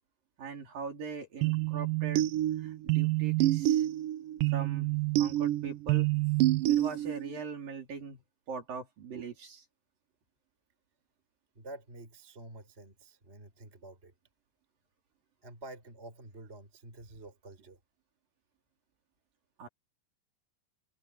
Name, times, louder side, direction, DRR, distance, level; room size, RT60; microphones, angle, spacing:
voice 1, 0.4-2.3 2.6-3.9 4.5-4.9 5.2-6.1 6.7-8.2 8.5-9.7 19.6-19.7, right 5 dB, 60° right, 5.9 m, -40 dB
sound 1, 1.4-7.4, right 15 dB, 75° right, 2.0 m, -28 dB
voice 2, 11.5-14.1 15.4-17.8, right 2 dB, 15° right, 4.7 m, -49 dB
omnidirectional pair, 4.5 m